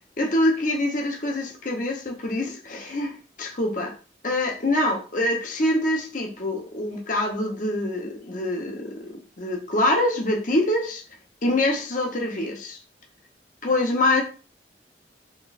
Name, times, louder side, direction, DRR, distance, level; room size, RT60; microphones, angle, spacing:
voice 1, 0.2-3.9 4.2-11.0 11.4-12.8 13.6-14.2, left 1 dB, 50° left, 2 dB, 0.9 m, -25 dB
4.4 x 3.0 x 2.4 m, 0.35 s
head